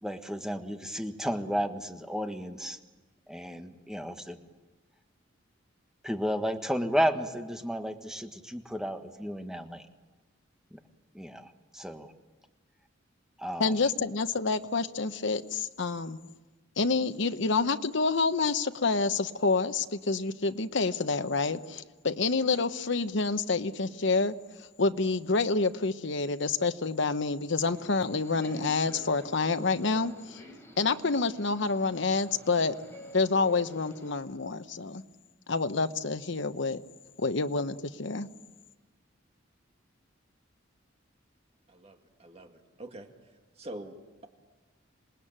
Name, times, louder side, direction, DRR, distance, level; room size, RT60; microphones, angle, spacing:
voice 1, 0.0-2.8 3.3-4.4 6.0-9.8 10.7-10.8 11.1-12.1 13.4-13.7, equal, 5° right, 6 dB, 1.5 m, -33 dB
voice 2, 13.6-16.2 16.8-30.4 30.8-32.7 33.1-35.0 35.5-36.8 37.2-38.3, left 4 dB, 65° left, 11 dB, 1.0 m, -28 dB
Subway metro underground, 27.6-34.2, left 1 dB, 15° left, 5.1 m, -51 dB
voice 3, 41.7-43.1 43.6-43.9, right 1 dB, 35° right, 4 dB, 2.2 m, -44 dB
27.5 x 20.0 x 8.9 m, 1.2 s
head